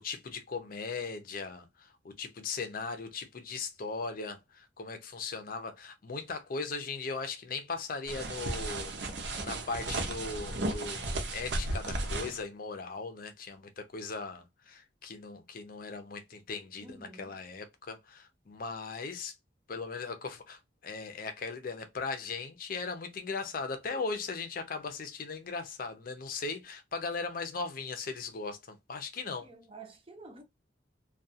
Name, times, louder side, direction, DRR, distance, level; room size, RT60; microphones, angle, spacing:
voice 1, 0.0-8.9 9.4-19.3 19.7-29.5, left 4 dB, 50° left, 0.5 m, -38 dB
sound 1, 8.1-12.4, right 2 dB, 65° right, 0.7 m, -34 dB
voice 2, 16.8-17.3 29.4-30.4, right 3 dB, 30° right, 0.6 m, -50 dB
2.3 x 2.3 x 2.6 m
head